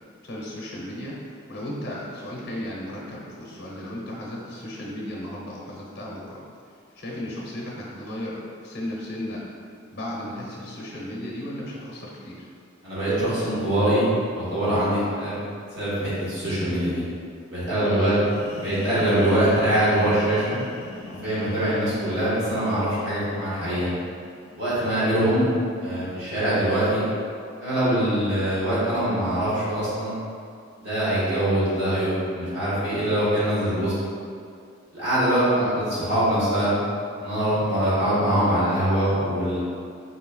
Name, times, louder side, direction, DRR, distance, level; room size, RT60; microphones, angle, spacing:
voice 1, 0.2-6.4 7.0-9.4 9.9-12.4 17.8-18.3 18.7-18.9 25.2-25.3 35.5-35.8, left 1 dB, 55° left, -4 dB, 0.8 m, -35 dB
voice 2, 12.8-15.4 15.7-17.0 17.5-18.1 18.5-20.6 21.2-23.9 24.6-25.5 25.8-27.1 27.6-30.1 30.8-33.9 34.9-36.7 37.2-39.6, right 1 dB, 55° right, -10 dB, 1.2 m, -23 dB
sound 1, 18.2-25.7, left 3 dB, 80° left, 0.4 m, -41 dB
4.3 x 3.3 x 2.3 m, 2.3 s
head